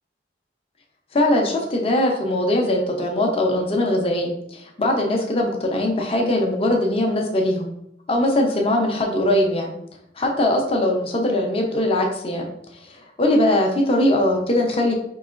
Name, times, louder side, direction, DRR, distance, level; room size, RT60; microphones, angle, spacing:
voice 1, 1.1-7.7 8.1-9.7 10.2-12.5 12.8-14.9, left 1 dB, 30° left, 1 dB, 0.6 m, -21 dB
4.6 x 2.9 x 2.5 m, 0.78 s
head